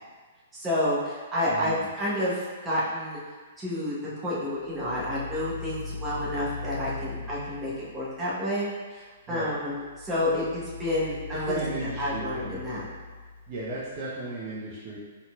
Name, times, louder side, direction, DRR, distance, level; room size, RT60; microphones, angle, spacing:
voice 1, 0.5-3.2 3.6-4.0 4.2-12.9, left 1 dB, 15° right, -8 dB, 1.3 m, -29 dB
voice 2, 1.5-1.9 9.3-9.5 11.3-12.6 13.5-15.0, right 2 dB, 40° right, -8 dB, 0.8 m, -35 dB
sound 1, 4.6-8.3 9.6-14.0, left 4 dB, 70° left, 0.4 m, -40 dB
4.0 x 3.9 x 2.5 m, 1.4 s
figure-of-eight pair, 115°, 0 cm